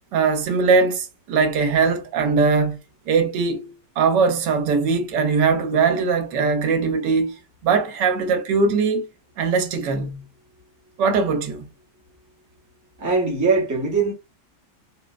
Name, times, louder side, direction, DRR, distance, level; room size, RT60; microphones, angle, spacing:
voice 1, 0.1-2.8 3.1-7.3 7.6-9.1 9.4-10.2 11.0-11.7, right 4 dB, 80° right, 1.2 m, -20 dB
voice 2, 13.0-14.1, right 4 dB, 15° right, 0.6 m, -21 dB
3.7 x 2.0 x 2.3 m
omnidirectional pair, 1.9 m